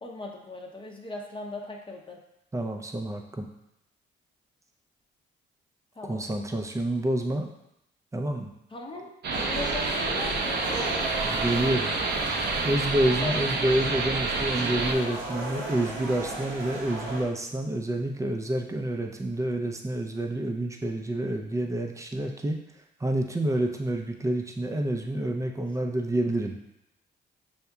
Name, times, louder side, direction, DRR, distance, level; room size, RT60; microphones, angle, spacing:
voice 1, 0.0-2.2 5.9-6.2 8.7-11.2 13.2-13.3, left 2 dB, 25° left, -1 dB, 0.8 m, -39 dB
voice 2, 2.5-3.5 6.0-7.5 8.1-8.5 11.3-12.0 12.6-22.6 23.0-26.6, right 1 dB, 15° right, 3 dB, 0.6 m, -28 dB
sound 1, 9.2-14.9, right 3 dB, 55° right, 0.7 m, -29 dB
sound 2, 9.3-17.2, right 2 dB, 85° right, 1.1 m, -35 dB
6.7 x 2.7 x 2.3 m, 0.84 s
cardioid pair, 75°, 20 cm